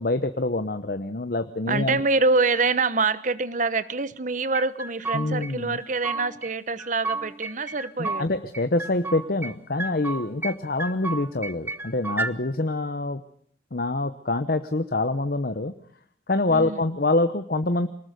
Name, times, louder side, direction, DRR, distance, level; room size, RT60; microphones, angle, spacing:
voice 1, 0.0-2.0 5.1-5.8 8.0-13.2 13.7-15.7 16.3-17.9, left 2 dB, 50° left, 9 dB, 0.9 m, -26 dB
voice 2, 1.7-8.3 16.5-16.8, right 3 dB, 40° right, 15 dB, 1.0 m, -25 dB
sound 1, 4.5-5.5 5.8-6.5 6.8-8.2 8.5-9.5 9.8-10.5 10.8-12.3, right 3 dB, 10° right, 0.9 m, -32 dB
24.0 x 19.5 x 6.7 m, 0.63 s
head